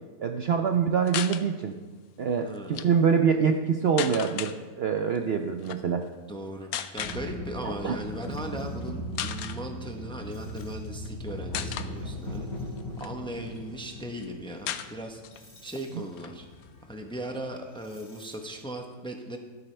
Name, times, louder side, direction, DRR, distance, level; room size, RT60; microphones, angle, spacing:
voice 1, 0.2-1.8 2.2-6.0 7.6-8.0, right 6 dB, 85° right, 5 dB, 0.5 m, -25 dB
sound 1, 1.1-1.4 2.6-2.9 4.0-4.6 5.6-5.8 6.7-7.2 8.2-8.4 8.8-8.9 9.1-9.6 10.5-11.1 11.5-11.9 12.5-13.6 13.9-14.0 14.2-14.3 14.7-15.4 15.7-15.8 16.1-17.2, left 10 dB, 70° left, 1.0 m, -35 dB
voice 2, 2.4-2.9 6.3-12.5 13.0-16.5 16.9-19.4, right 1 dB, 5° left, 3 dB, 0.6 m, -38 dB
sound 2, 6.9-18.6, equal, 45° left, 2.8 m, -39 dB
13.0 x 12.0 x 3.3 m, 1.4 s
omnidirectional pair, 1.8 m